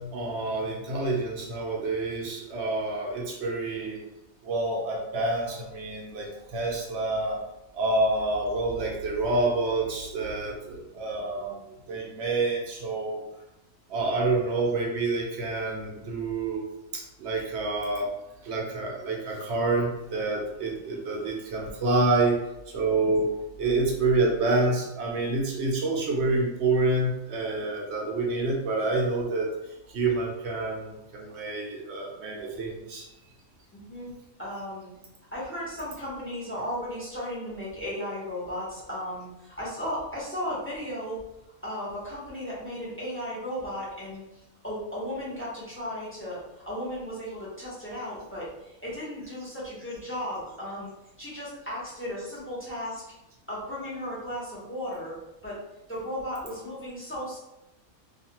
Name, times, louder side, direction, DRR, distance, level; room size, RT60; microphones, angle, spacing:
voice 1, 0.0-4.0 4.4-7.4 7.7-11.6 11.9-13.2 13.9-16.6 16.9-18.1 18.4-22.4 22.7-23.3 23.6-29.5 29.9-33.1, right 2 dB, 60° right, -1 dB, 0.9 m, -28 dB
voice 2, 33.7-34.1 34.4-34.9 35.3-41.2 41.6-44.2 44.6-50.9 51.2-53.0 53.5-55.1 55.4-55.6 55.9-57.4, equal, 10° left, -8 dB, 0.7 m, -35 dB
2.5 x 2.4 x 2.8 m, 0.89 s
omnidirectional pair, 1.5 m